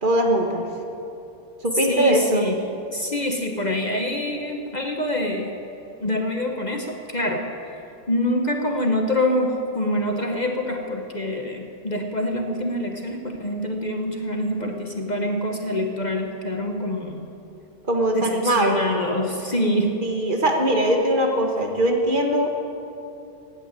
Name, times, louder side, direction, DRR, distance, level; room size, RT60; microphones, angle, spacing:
voice 1, 0.0-0.6 1.6-2.5 14.6-14.7 17.8-18.8 20.0-22.5, right 1 dB, 40° right, 2 dB, 1.5 m, -21 dB
voice 2, 1.9-2.6 2.9-5.5 6.0-7.5 8.1-17.3 18.1-20.0, left 1 dB, 35° left, 3 dB, 1.1 m, -25 dB
15.5 x 9.3 x 9.0 m, 2.8 s
omnidirectional pair, 1.3 m